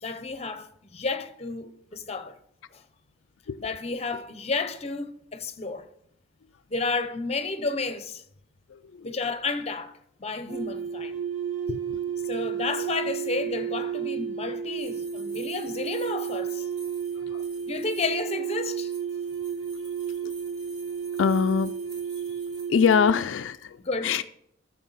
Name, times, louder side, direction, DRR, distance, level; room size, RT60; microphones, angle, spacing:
voice 1, 0.0-2.4 2.7-2.8 3.6-5.9 6.7-8.2 9.0-11.2 12.3-16.7 17.7-18.9 23.8-24.2, left 3 dB, 35° left, 0.8 m, -31 dB
voice 2, 8.7-9.1 11.7-12.0 17.3-17.4 20.2-20.3 21.2-21.7 22.7-23.8 24.0-24.2, left 6 dB, 80° left, 0.4 m, -24 dB
sound 1, 10.5-23.2, right 7 dB, 70° right, 1.7 m, -32 dB
sound 2, 14.8-18.2 18.8-22.9, right 3 dB, 20° right, 2.7 m, -51 dB
13.5 x 7.0 x 4.1 m
head